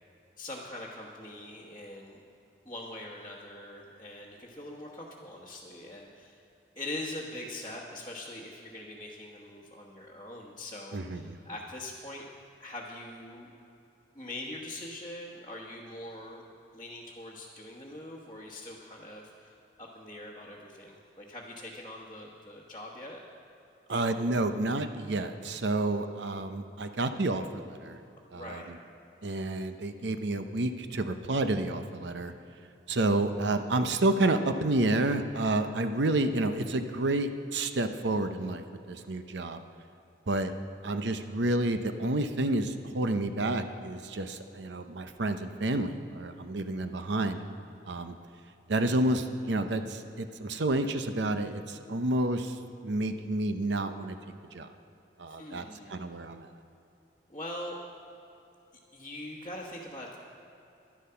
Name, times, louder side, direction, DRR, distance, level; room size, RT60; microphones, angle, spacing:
voice 1, 0.4-2.2 2.6-6.4 6.7-12.2 12.6-13.5 14.1-16.4 16.7-23.2 23.9-24.1 28.3-28.7 55.3-55.9 57.3-57.8 58.9-60.2, left 1 dB, 20° left, -5 dB, 1.2 m, -42 dB
voice 2, 10.9-11.4 23.9-28.0 28.3-28.6 29.2-32.3 32.9-39.6 40.3-40.5 40.8-47.4 47.9-48.1 48.7-52.6 52.8-54.1 54.5-54.7 55.2-55.6 55.9-56.5, right 2 dB, 70° right, 8 dB, 0.7 m, -29 dB
12.0 x 11.5 x 5.7 m, 2.8 s
head